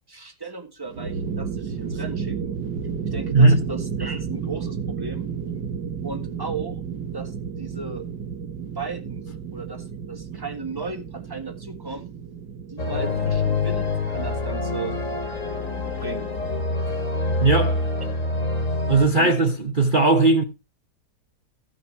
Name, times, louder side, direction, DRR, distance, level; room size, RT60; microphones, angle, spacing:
voice 1, 0.1-2.6 3.1-5.3 6.0-6.8 7.1-8.0 8.7-9.2 9.5-12.1 12.7-15.0 16.0-16.3 19.2-19.3, right 4 dB, 15° right, 1.5 m, -35 dB
sound 1, 0.8-19.7, right 6 dB, 75° right, 2.1 m, -33 dB
sound 2, 12.8-19.1, left 3 dB, 45° left, 2.8 m, -26 dB
voice 2, 17.4-17.9 18.9-20.4, right 3 dB, 35° right, 0.9 m, -18 dB
14.5 x 6.0 x 4.6 m
omnidirectional pair, 1.8 m